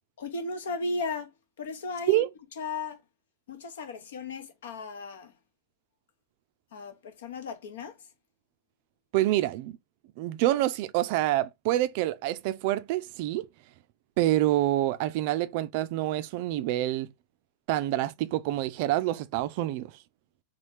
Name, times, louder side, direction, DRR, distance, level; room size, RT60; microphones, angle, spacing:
voice 1, 0.2-1.3 1.6-2.2 2.6-3.0 3.5-5.3 6.7-7.9, left 3 dB, 60° left, 0.9 m, -35 dB
voice 2, 9.1-9.8 10.2-13.5 14.2-17.1 17.7-19.9, right 15 dB, 45° right, 0.4 m, -27 dB
4.2 x 3.0 x 3.3 m
figure-of-eight pair, 90°, 0 cm